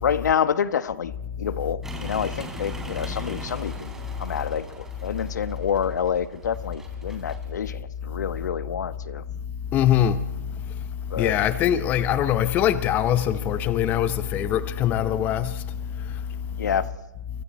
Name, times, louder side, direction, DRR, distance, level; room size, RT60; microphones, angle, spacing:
voice 1, 0.0-1.1 1.4-3.9 4.2-9.2 11.1-11.4 16.6-16.8, left 8 dB, 65° left, 1.2 m, -27 dB
sound 1, 1.8-7.5, right 2 dB, 5° right, 3.2 m, -40 dB
voice 2, 9.7-10.2 11.2-15.7 16.0-16.2, left 10 dB, 15° left, 0.7 m, -22 dB
29.0 x 24.5 x 4.3 m
hypercardioid pair, 150°, 10 cm